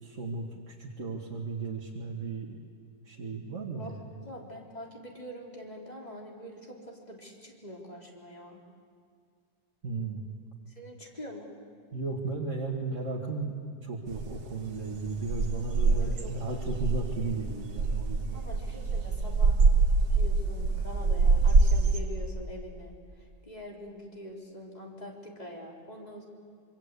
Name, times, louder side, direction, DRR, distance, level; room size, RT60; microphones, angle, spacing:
voice 1, 0.0-2.6 3.0-4.0 9.8-10.3 11.9-18.5, right 3 dB, 45° right, -2 dB, 2.4 m, -35 dB
voice 2, 4.2-8.6 10.7-11.5 15.9-16.6 18.3-19.6 20.1-26.2, equal, 20° left, -1 dB, 3.9 m, -44 dB
sound 1, 14.1-22.0, right 3 dB, 60° right, 2.0 m, -25 dB
26.0 x 25.0 x 8.4 m, 2.2 s
omnidirectional pair, 1.9 m